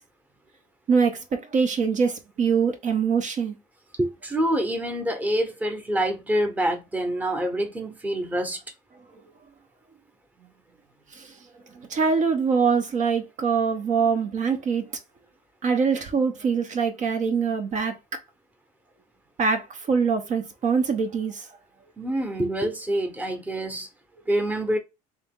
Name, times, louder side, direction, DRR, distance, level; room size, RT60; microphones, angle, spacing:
voice 1, 0.9-3.5 11.1-11.3 11.7-14.9 15.6-18.2 19.4-21.5, right 5 dB, 50° right, 0.9 m, -24 dB
voice 2, 4.0-8.6 22.0-23.9 24.3-24.8, right 1 dB, 10° right, 1.0 m, -26 dB
3.4 x 3.0 x 3.6 m
supercardioid pair, 105°, 17 cm